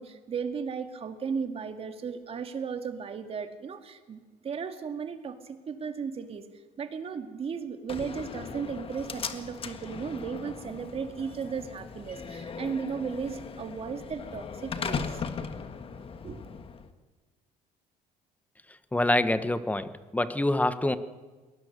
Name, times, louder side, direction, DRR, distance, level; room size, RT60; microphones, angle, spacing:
voice 1, 0.0-6.5 6.8-15.2 16.2-16.4, right 6 dB, 40° right, 7 dB, 2.2 m, -35 dB
Slam, 7.9-16.9, left 5 dB, 40° left, 1.6 m, -38 dB
voice 2, 18.9-21.0, left 1 dB, 10° left, 13 dB, 1.1 m, -26 dB
22.5 x 19.0 x 6.8 m, 1.3 s
cardioid pair, 100°, 15 cm